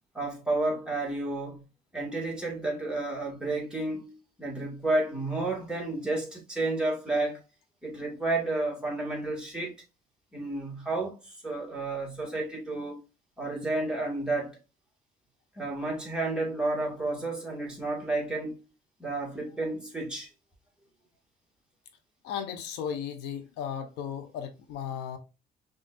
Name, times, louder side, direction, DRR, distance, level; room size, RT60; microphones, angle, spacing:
voice 1, 0.1-1.6 1.9-7.4 7.8-9.7 10.3-13.0 13.4-14.6 15.6-18.6 19.0-20.3, right 2 dB, 5° right, 2.0 m, -31 dB
voice 2, 22.2-25.2, left 8 dB, 90° left, 0.8 m, -35 dB
5.6 x 2.7 x 2.5 m
cardioid pair, 110°, 17 cm